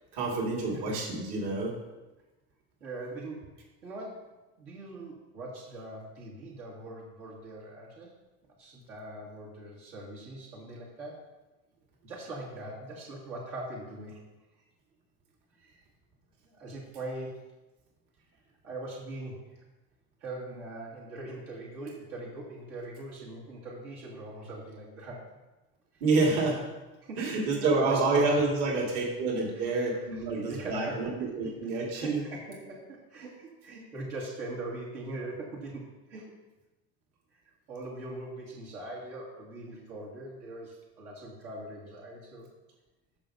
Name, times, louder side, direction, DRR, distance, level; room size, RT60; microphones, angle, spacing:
voice 1, 0.1-1.7 26.0-26.7 27.2-32.2, right 3 dB, 60° right, -1 dB, 2.3 m, -28 dB
voice 2, 2.8-3.5 3.8-4.1 4.6-8.1 8.6-11.2 12.0-14.2 15.6-15.8 16.4-17.4 18.6-19.4 20.2-25.2 27.0-28.2 29.5-29.7 30.1-31.3 32.0-35.8 36.1-36.3 37.3-37.4 37.7-42.5, right 2 dB, 80° right, -4 dB, 2.3 m, -41 dB
13.0 x 5.2 x 2.8 m, 1.1 s
hypercardioid pair, 80°, 44 cm